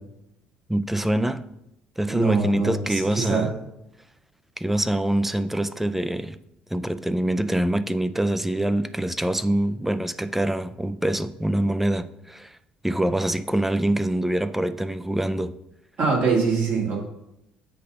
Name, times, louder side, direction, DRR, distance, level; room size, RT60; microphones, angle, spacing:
voice 1, 0.7-1.4 2.0-3.5 4.6-6.4 6.7-12.6 12.8-15.5, right 1 dB, 5° right, 0.4 m, -25 dB
voice 2, 2.1-3.5 16.0-17.0, right 4 dB, 55° right, 2.2 m, -24 dB
8.3 x 2.8 x 5.5 m
hypercardioid pair, 55°, 4 cm